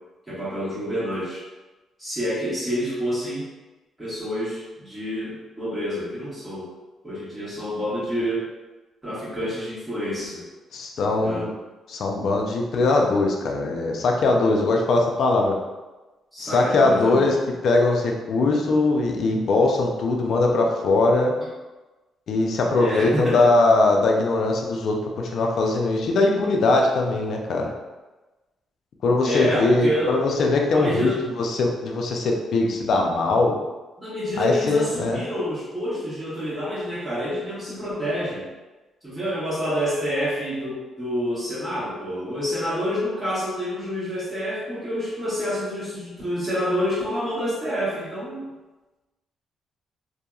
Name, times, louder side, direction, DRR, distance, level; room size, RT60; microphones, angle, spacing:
voice 1, 0.3-1.4 2.0-3.5 4.0-6.7 7.0-8.5 9.0-10.4 11.2-11.5 16.3-17.4 22.7-23.5 29.2-30.2 30.7-31.2 34.0-38.5 39.0-48.5, equal, 10° right, -10 dB, 1.4 m, -28 dB
voice 2, 10.7-11.5 11.9-15.6 16.4-17.4 17.6-21.3 22.3-27.7 29.0-31.1 31.4-33.6 34.4-35.2, left 2 dB, 65° left, 1 dB, 0.4 m, -21 dB
2.7 x 2.6 x 2.3 m, 1.1 s
cardioid pair, 90°, 0 cm